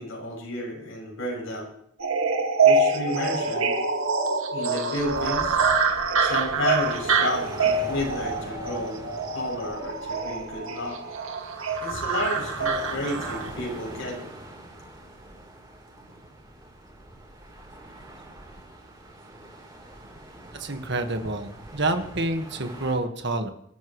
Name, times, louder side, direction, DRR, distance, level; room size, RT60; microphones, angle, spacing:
voice 1, 0.0-1.7 2.6-3.8 4.5-5.7 6.2-9.0 9.3-11.0 11.8-14.2, left 1 dB, 70° left, -2 dB, 8.0 m, -31 dB
sound 1, 2.0-13.5, right 4 dB, 80° right, 2.3 m, -25 dB
sound 2, 4.9-23.0, right 1 dB, 20° right, 3.9 m, -43 dB
voice 2, 20.5-23.5, right 2 dB, 55° right, 6 dB, 1.8 m, -28 dB
25.5 x 13.5 x 3.3 m, 0.71 s
head